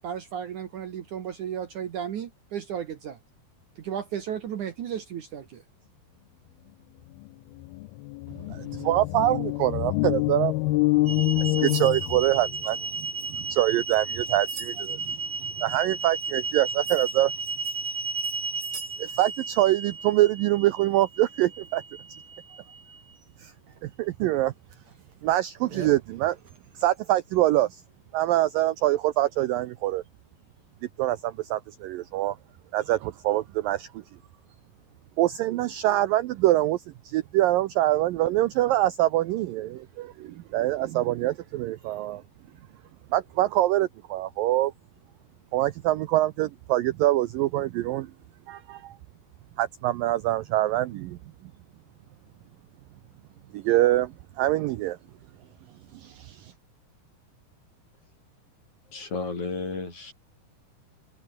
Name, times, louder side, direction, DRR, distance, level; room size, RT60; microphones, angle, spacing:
voice 1, 0.0-3.2 3.8-5.6, right 9 dB, 60° right, 2.5 m, -34 dB
sound 1, 7.2-7.3 7.6-12.6, left 22 dB, 80° left, 2.2 m, -26 dB
voice 2, 8.5-10.5 11.4-13.1 13.4-15.2 15.6-17.3 19.0-21.8 23.4-23.5 23.8-24.5 25.2-26.4 26.8-27.8 28.1-30.0 31.0-32.4 32.7-34.0 35.2-42.2 43.1-44.7 45.5-48.1 48.5-49.0 49.6-51.2 53.5-55.0 55.9-56.5, right 15 dB, 75° right, 2.2 m, -25 dB
sound 2, 11.1-23.0 23.8-23.9 24.7-24.8 25.7-25.9 28.6-28.7, right 4 dB, 45° right, 6.3 m, -34 dB
voice 3, 58.9-60.1, left 3 dB, 45° left, 8.0 m, -32 dB
omnidirectional pair, 4.7 m